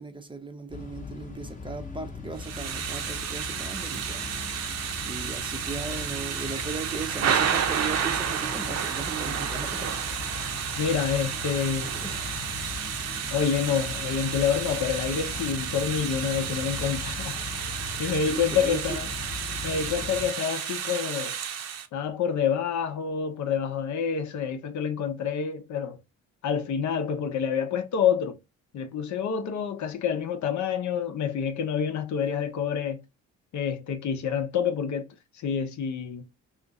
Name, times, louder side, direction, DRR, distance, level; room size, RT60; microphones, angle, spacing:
voice 1, 0.0-10.1 11.3-11.5 11.8-12.4 18.3-19.0, right 4 dB, 15° right, 0.5 m, -38 dB
sound 1, 0.7-20.3, left 5 dB, 25° left, 0.8 m, -39 dB
Thunder / Rain, 2.4-21.9, right 8 dB, 60° right, 0.6 m, -31 dB
voice 2, 10.8-11.9 13.3-17.4 18.0-19.1 19.6-21.4 21.9-26.0 26.4-28.4 28.7-33.0 33.5-35.1 35.3-36.3, left 7 dB, 70° left, 0.7 m, -27 dB
2.5 x 2.5 x 3.8 m
cardioid pair, 90°, 30 cm